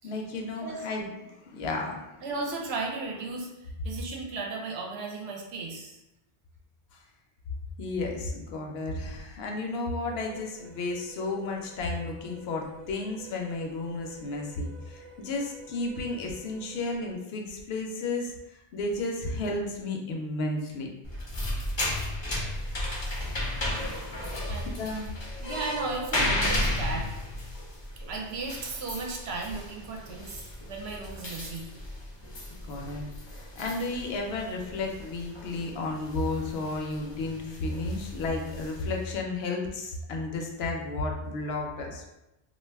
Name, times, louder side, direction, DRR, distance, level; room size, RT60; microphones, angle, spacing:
voice 1, 0.0-2.2 7.8-20.9 24.8-25.1 32.7-33.1 33.3-42.1, left 2 dB, 70° left, 1 dB, 0.8 m, -33 dB
voice 2, 2.2-3.5 3.8-6.0 24.5-24.7 25.4-27.1 28.1-31.7, right 3 dB, 75° right, 0 dB, 0.8 m, -35 dB
sound 1, 10.1-17.1, right 2 dB, 45° right, 0.9 m, -50 dB
sound 2, 21.0-39.2, left 1 dB, 35° left, 0.4 m, -34 dB
2.4 x 2.3 x 3.3 m, 0.95 s
omnidirectional pair, 1.1 m